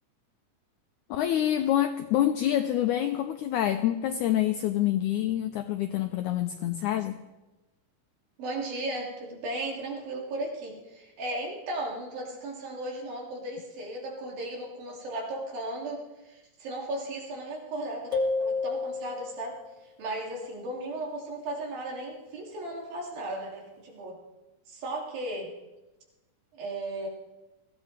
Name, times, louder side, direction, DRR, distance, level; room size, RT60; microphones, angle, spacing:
voice 1, 1.1-7.1, left 12 dB, 85° left, 7 dB, 1.7 m, -26 dB
voice 2, 8.4-19.6 20.0-24.2 24.7-25.5 26.5-27.1, right 1 dB, 75° right, -2 dB, 4.4 m, -36 dB
sound 1, 18.1-19.6, left 3 dB, 45° left, 0.6 m, -30 dB
22.5 x 15.5 x 3.3 m, 1.1 s
omnidirectional pair, 4.2 m